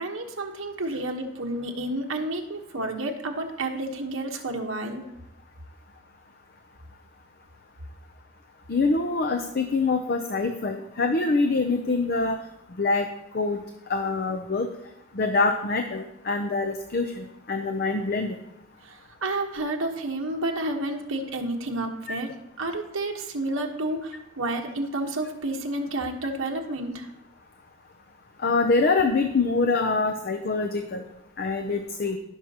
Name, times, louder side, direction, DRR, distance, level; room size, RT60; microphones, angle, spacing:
voice 1, 0.0-5.0 18.8-18.9 19.2-27.1, right 2 dB, 75° right, 3 dB, 1.2 m, -30 dB
voice 2, 8.7-12.4 12.8-13.1 13.3-13.6 13.9-14.7 15.2-18.3 28.4-31.0 31.4-32.2, left 3 dB, 45° left, 6 dB, 0.5 m, -25 dB
15.5 x 6.3 x 2.9 m, 0.89 s
head